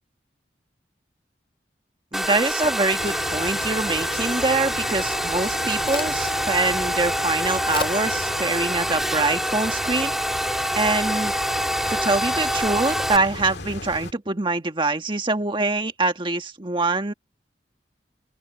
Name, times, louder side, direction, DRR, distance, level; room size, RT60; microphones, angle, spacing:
Domestic sounds home sounds, 2.1-13.2, equal, ahead, 2.5 m, -26 dB
voice 1, 2.1-10.1 10.8-11.3 11.9-17.1, right 3 dB, 30° right, 1.6 m, -24 dB
sound 1, 3.0-14.1, left 3 dB, 75° left, 1.8 m, -36 dB
Crack, 5.2-12.1, left 4 dB, 30° left, 3.8 m, -41 dB
open air
head